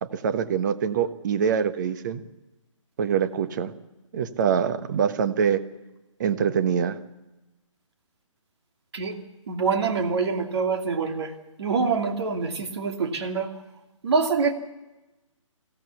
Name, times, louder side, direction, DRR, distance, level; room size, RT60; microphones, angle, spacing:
voice 1, 0.0-2.2 3.0-3.7 4.1-5.6 6.2-7.0, right 7 dB, 35° right, 11 dB, 1.2 m, -24 dB
voice 2, 9.5-11.3 11.6-13.5 14.0-14.5, right 5 dB, 55° right, 5 dB, 2.6 m, -25 dB
23.0 x 16.0 x 8.4 m, 1.0 s
figure-of-eight pair, 140°, 17 cm